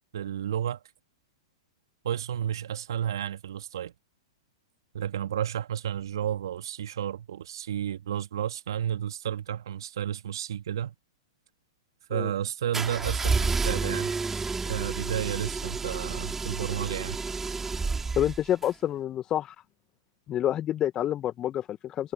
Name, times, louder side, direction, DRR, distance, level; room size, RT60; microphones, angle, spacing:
voice 1, 0.1-0.8 2.0-3.9 4.9-10.9 12.1-14.1 14.6-17.2, right 10 dB, 65° right, 1.6 m, -32 dB
sound 1, 12.7-18.7, right 4 dB, 10° right, 3.5 m, -30 dB
voice 2, 18.2-19.5 20.3-22.1, left 11 dB, 25° left, 0.9 m, -28 dB
figure-of-eight pair, 110°, 3 cm